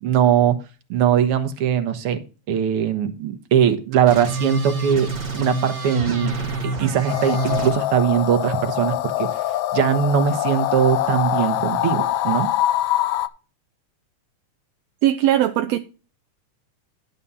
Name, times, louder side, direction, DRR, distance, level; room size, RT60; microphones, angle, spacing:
voice 1, 0.0-0.6 0.9-2.2 2.5-6.3 6.6-9.3 9.7-12.5, right 9 dB, 60° right, 1.8 m, -20 dB
sound 1, 4.1-7.7, right 3 dB, 25° right, 1.3 m, -27 dB
sound 2, 7.1-13.3, left 13 dB, 80° left, 1.9 m, -24 dB
voice 2, 15.0-15.8, right 12 dB, 75° right, 1.6 m, -19 dB
11.5 x 4.2 x 6.8 m
omnidirectional pair, 3.5 m